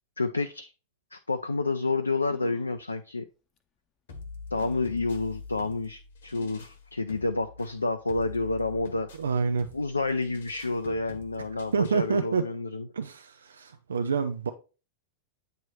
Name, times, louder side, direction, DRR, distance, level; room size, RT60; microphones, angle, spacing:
voice 1, 0.2-0.7 1.1-3.3 4.5-9.1 9.7-12.9, left 3 dB, 80° left, 0.3 m, -29 dB
sound 1, 2.2-2.8 3.6-3.7 4.5-5.0 6.3-6.8 7.3-7.4 7.7-7.8, left 7 dB, 25° left, 0.7 m, -54 dB
sound 2, 4.1-12.1, left 4 dB, 60° left, 0.9 m, -45 dB
voice 2, 9.2-9.7 11.7-12.5 12.9-14.5, right 5 dB, 70° right, 0.4 m, -27 dB
8.5 x 3.1 x 4.2 m
figure-of-eight pair, 90°, 0 cm